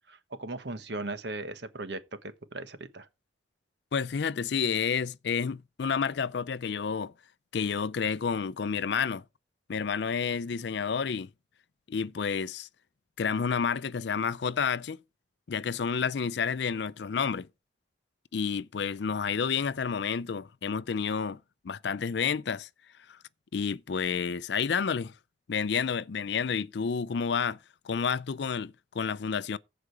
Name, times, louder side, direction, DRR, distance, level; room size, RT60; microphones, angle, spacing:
voice 1, 0.1-3.1, right 2 dB, 65° right, 1.3 m, -38 dB
voice 2, 3.9-7.1 7.5-9.2 9.7-11.3 11.9-12.7 13.2-15.0 15.5-17.5 18.3-21.4 21.6-22.7 23.1-23.2 23.5-25.1 25.5-27.6 27.8-29.6, left 6 dB, 65° left, 0.4 m, -30 dB
15.0 x 5.0 x 4.8 m
head